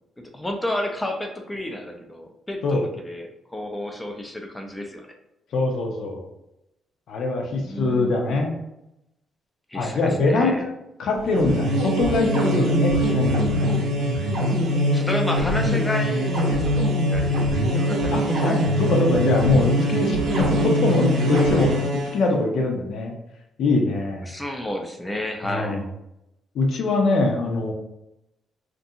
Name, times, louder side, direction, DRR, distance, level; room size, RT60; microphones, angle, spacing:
voice 1, 0.2-5.1 7.7-8.2 9.7-10.7 14.9-18.6 24.2-25.8, left 1 dB, 10° left, 3 dB, 0.4 m, -31 dB
voice 2, 5.5-6.2 7.1-8.5 9.7-10.7 11.0-13.7 18.1-21.7 22.1-23.1 23.6-24.3 25.4-25.8 26.5-27.7, left 2 dB, 70° left, 1 dB, 0.6 m, -23 dB
sound 1, 11.2-22.2, equal, 70° right, 0.6 m, -22 dB
2.5 x 2.2 x 2.7 m, 0.87 s
cardioid pair, 90°, 0 cm